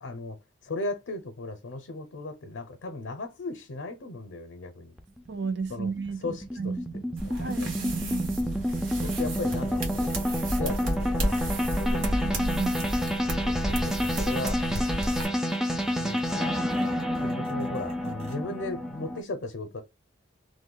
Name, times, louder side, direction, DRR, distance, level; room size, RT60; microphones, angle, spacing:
voice 1, 0.0-0.4 0.6-4.9 5.7-5.9 6.2-6.7 7.2-7.5 9.0-10.2 10.6-12.4 13.4-15.0 16.0-16.2 17.2-19.8, left 2 dB, 75° left, 0.6 m, -36 dB
sound 1, 5.0-19.2, equal, ahead, 0.3 m, -29 dB
voice 2, 5.3-6.9 7.4-8.3 11.9-12.9, right 5 dB, 60° right, 0.5 m, -33 dB
sound 2, 7.2-15.2, equal, 75° right, 1.2 m, -32 dB
sound 3, 8.7-18.3, equal, 30° right, 0.9 m, -50 dB
3.0 x 2.1 x 3.7 m
head